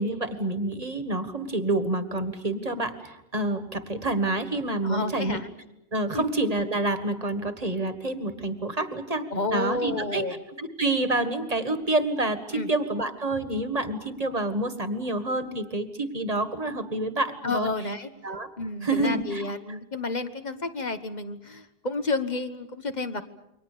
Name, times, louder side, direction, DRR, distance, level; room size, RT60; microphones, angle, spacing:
voice 1, 0.0-5.4 5.9-10.2 10.6-17.7 18.2-18.5 18.8-19.5, right 2 dB, 35° right, 10 dB, 1.8 m, -28 dB
voice 2, 4.8-5.5 6.1-6.2 9.3-10.4 12.5-12.7 17.4-18.1 18.6-23.2, left 3 dB, 40° left, 9 dB, 1.5 m, -30 dB
29.0 x 23.5 x 6.9 m, 0.85 s
omnidirectional pair, 1.2 m